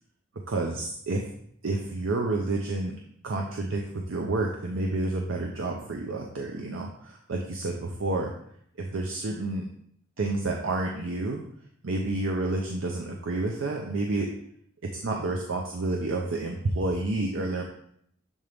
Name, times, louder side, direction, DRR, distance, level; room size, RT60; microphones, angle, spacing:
voice 1, 0.5-1.3 1.6-3.0 3.2-8.3 8.8-9.7 10.2-11.4 11.8-14.3 14.8-17.6, right 2 dB, 75° right, 1 dB, 0.6 m, -29 dB
7.2 x 3.8 x 3.4 m, 0.68 s
head